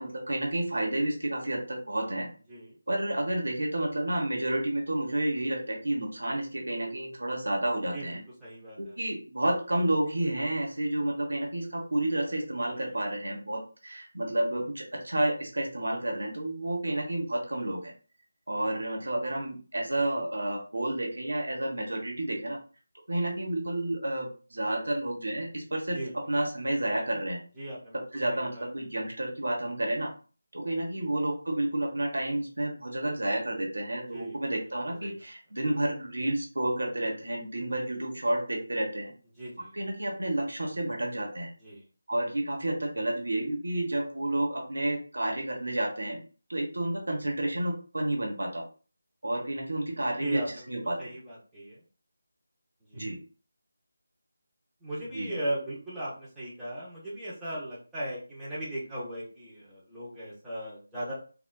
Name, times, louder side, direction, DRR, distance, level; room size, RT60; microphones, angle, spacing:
voice 1, 0.0-2.3 2.9-8.2 8.8-17.9 18.5-22.6 23.1-27.4 28.1-30.1 30.5-39.1 39.7-41.5 42.1-46.2 46.5-48.7 49.2-51.1 52.9-53.2 55.1-55.3, right 1 dB, 60° right, 0 dB, 1.0 m, -30 dB
voice 2, 8.4-9.0 12.8-12.9 25.9-26.1 27.6-28.0 28.3-28.7 30.9-31.1 34.1-34.4 35.0-35.1 39.4-39.7 41.6-41.8 50.2-50.7 51.0-51.8 52.9-53.1 54.8-61.1, right 1 dB, 5° right, -11 dB, 0.8 m, -38 dB
3.8 x 2.4 x 2.3 m, 0.37 s
figure-of-eight pair, 160°, 0 cm